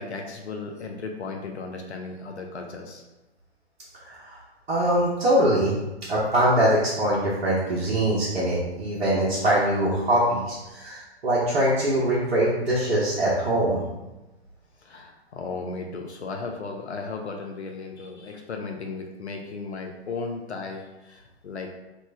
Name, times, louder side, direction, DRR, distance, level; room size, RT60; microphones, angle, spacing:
voice 1, 0.0-3.0 14.8-21.7, left 4 dB, 90° left, 2 dB, 0.5 m, -35 dB
voice 2, 4.0-4.4 4.7-5.7 6.1-13.8, right 1 dB, 65° right, -7 dB, 0.9 m, -23 dB
3.1 x 2.0 x 3.3 m, 1.0 s
figure-of-eight pair, 125°, 32 cm